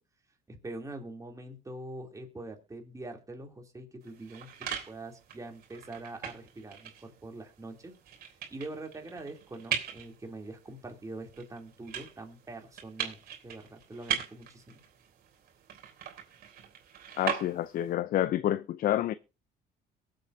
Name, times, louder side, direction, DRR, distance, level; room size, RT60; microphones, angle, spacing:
voice 1, 0.5-7.9 8.3-14.8, right 2 dB, 20° right, 3.1 m, -44 dB
sound 1, 4.0-17.9, right 9 dB, 65° right, 3.5 m, -40 dB
voice 2, 17.2-19.1, left 12 dB, 60° left, 0.6 m, -28 dB
22.5 x 7.8 x 2.8 m
cardioid pair, 110°, 17 cm